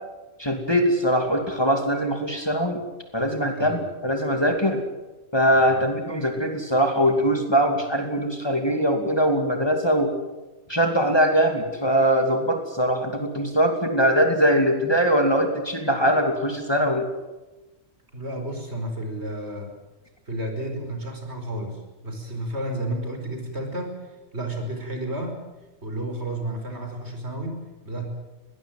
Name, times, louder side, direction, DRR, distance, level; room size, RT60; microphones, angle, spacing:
voice 1, 0.4-2.8 3.1-4.8 5.3-10.1 10.7-17.1, equal, 20° left, 4 dB, 2.7 m, -22 dB
voice 2, 3.6-3.9 5.7-5.8 18.1-19.7 20.3-25.4 25.8-28.1, right 1 dB, 60° right, 4 dB, 5.6 m, -32 dB
22.0 x 19.5 x 9.2 m, 1.1 s
omnidirectional pair, 1.3 m